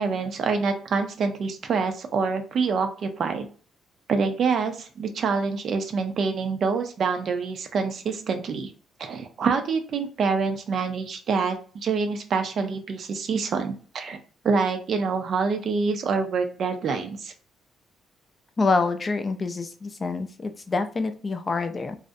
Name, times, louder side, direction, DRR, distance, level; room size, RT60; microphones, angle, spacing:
voice 1, 0.0-3.5 4.1-8.7 9.0-14.2 14.4-17.3, right 5 dB, 60° right, 6 dB, 0.4 m, -26 dB
voice 2, 18.6-22.0, left 3 dB, 30° left, 8 dB, 0.3 m, -26 dB
2.4 x 2.0 x 2.5 m, 0.41 s
cardioid pair, 90°, 0 cm